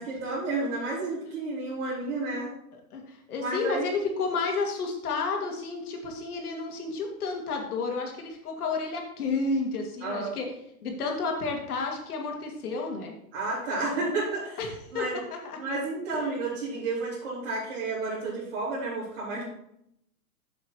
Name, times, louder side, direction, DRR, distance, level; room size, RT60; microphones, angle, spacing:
voice 1, 0.0-2.5 3.4-3.9 10.0-10.3 13.3-14.6 14.9-15.2 15.6-19.4, right 3 dB, 50° right, -10 dB, 3.9 m, -31 dB
voice 2, 2.9-10.5 10.8-13.1 14.6-14.7 14.9-15.0 15.4-15.6 16.1-16.2, left 4 dB, 75° left, 2 dB, 2.6 m, -31 dB
8.2 x 7.2 x 4.7 m, 0.75 s
hypercardioid pair, 175°, 45 cm